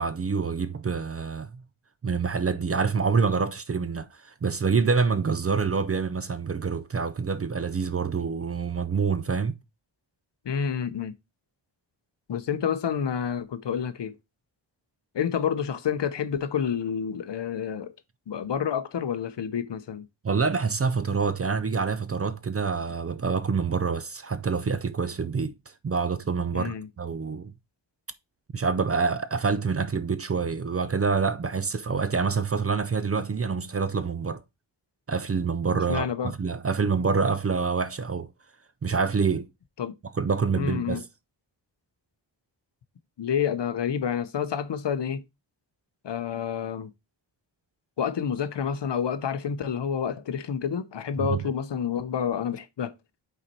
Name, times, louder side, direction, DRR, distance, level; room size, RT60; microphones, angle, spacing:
voice 1, 0.0-1.6 2.0-9.6 20.2-25.5 25.8-27.5 28.5-34.4 35.1-38.3 38.8-39.5 40.1-41.0 51.2-51.4, right 5 dB, 35° right, 0.4 m, -26 dB
voice 2, 10.4-11.1 12.3-14.2 15.1-17.9 18.3-20.1 26.5-26.9 35.9-36.3 39.8-39.9 40.6-41.0 43.2-45.2 46.0-46.9 48.0-52.9, left 7 dB, 65° left, 0.7 m, -29 dB
5.6 x 4.2 x 4.4 m
wide cardioid pair, 130°, 46 cm